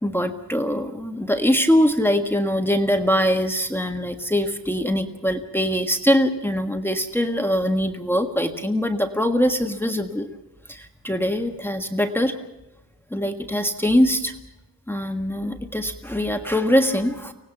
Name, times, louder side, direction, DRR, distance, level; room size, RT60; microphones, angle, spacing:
voice 1, 0.0-10.3 10.7-12.4 13.1-14.3 14.9-17.3, equal, 5° left, 5 dB, 1.5 m, -22 dB
24.5 x 18.5 x 7.2 m, 0.95 s
wide cardioid pair, 110°, 40 cm